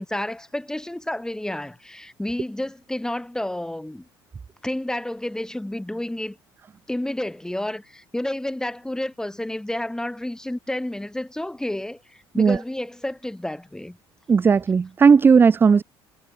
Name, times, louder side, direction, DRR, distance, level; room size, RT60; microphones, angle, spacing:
voice 1, 0.0-4.0 4.6-6.4 6.9-14.0, left 1 dB, 5° left, 1.3 m, -30 dB
voice 2, 14.3-15.8, right 5 dB, 15° right, 0.3 m, -15 dB
figure-of-eight pair, 55°, 13 cm